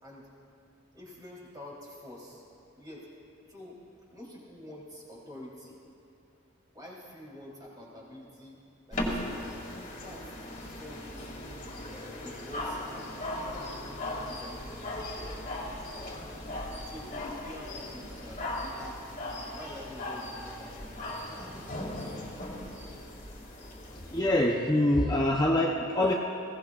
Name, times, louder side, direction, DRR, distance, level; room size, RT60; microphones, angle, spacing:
voice 1, 0.9-2.5 2.8-3.1 3.5-3.8 4.1-5.8 6.7-8.6 8.9-9.4 10.0-11.5 11.9-14.6 16.8-19.1 19.5-22.8, left 1 dB, 20° right, -5 dB, 3.4 m, -48 dB
sound 1, 8.9-24.2, left 1 dB, 40° left, 2.3 m, -38 dB
voice 2, 24.1-26.1, left 1 dB, 20° left, -2 dB, 0.7 m, -25 dB
21.0 x 17.0 x 2.4 m, 2.7 s
head